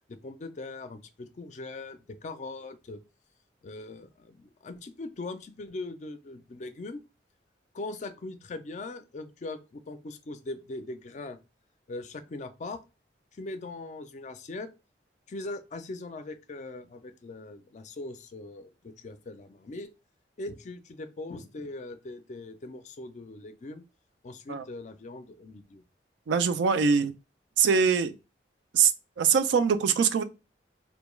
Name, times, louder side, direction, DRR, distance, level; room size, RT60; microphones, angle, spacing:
voice 1, 0.1-3.0 3.6-7.0 7.7-11.4 11.9-12.8 13.3-14.7 15.3-19.9 20.4-23.8 24.2-25.8, left 2 dB, 40° left, 0.4 m, -40 dB
voice 2, 26.3-27.1 27.6-28.1 28.7-28.9 29.2-30.2, right 6 dB, 85° right, 0.3 m, -23 dB
2.2 x 2.1 x 3.1 m
head